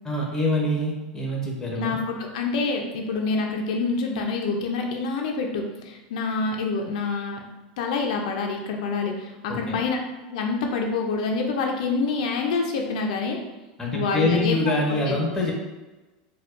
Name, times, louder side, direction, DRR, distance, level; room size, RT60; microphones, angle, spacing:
voice 1, 0.0-2.0 9.5-9.8 13.8-15.5, left 1 dB, 10° left, -2 dB, 0.9 m, -25 dB
voice 2, 1.8-7.4 7.8-10.0 10.3-13.4 13.9-14.7 15.1-15.5, left 4 dB, 75° left, 2 dB, 0.5 m, -27 dB
4.2 x 2.2 x 2.5 m, 1.1 s
supercardioid pair, 125°, 4 cm